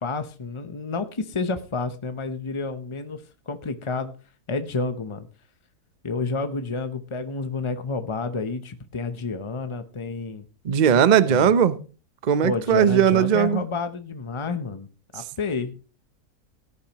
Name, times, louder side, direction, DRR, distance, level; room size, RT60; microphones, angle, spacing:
voice 1, 0.0-4.1 4.5-5.3 6.0-10.5 11.2-11.5 12.4-14.9 15.1-15.7, left 4 dB, 35° left, 0.5 m, -30 dB
voice 2, 10.6-11.7 12.2-13.6, right 8 dB, 40° right, 0.6 m, -18 dB
17.5 x 10.5 x 2.9 m
omnidirectional pair, 1.7 m